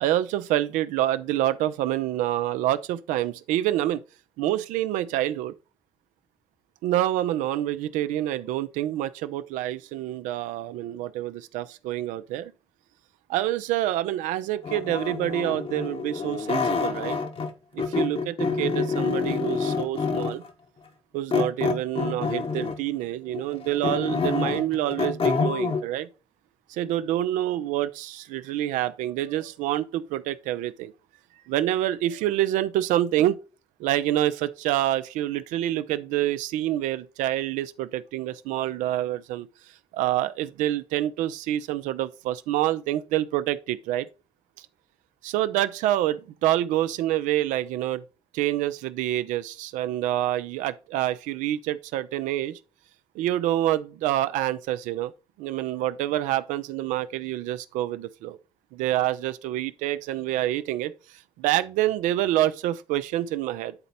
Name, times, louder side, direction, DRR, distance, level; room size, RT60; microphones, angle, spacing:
voice 1, 0.0-4.0 4.4-5.5 6.8-12.5 13.3-17.2 17.7-20.4 21.1-26.1 26.7-30.9 31.5-33.4 33.8-39.5 39.9-44.1 45.2-48.0 48.3-52.6 53.1-55.1 55.4-58.4 58.7-60.9 61.4-63.7, right 13 dB, 75° right, 0.5 m, -27 dB
sound 1, 14.6-17.5 17.8-20.5 21.3-22.9 23.3-25.8, left 4 dB, 45° left, 1.1 m, -27 dB
8.8 x 4.0 x 4.1 m
hypercardioid pair, 45°, 13 cm